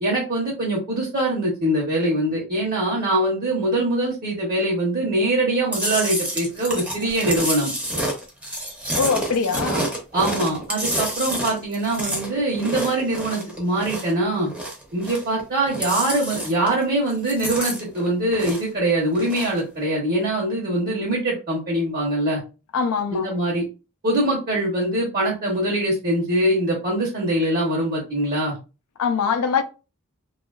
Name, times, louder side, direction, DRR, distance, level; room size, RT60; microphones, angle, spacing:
voice 1, 0.0-7.7 9.6-9.8 10.1-14.5 14.9-22.4 23.1-23.6 24.0-28.6, right 1 dB, 45° right, 0.9 m, -23 dB
Chewing mastication, 5.7-14.2 14.5-15.4 15.7-16.8 17.1-18.8 19.1-19.6, right 1 dB, 5° right, 0.6 m, -28 dB
voice 2, 9.0-9.9 22.7-23.3 29.0-29.6, left 6 dB, 75° left, 0.4 m, -22 dB
2.7 x 2.3 x 2.3 m
head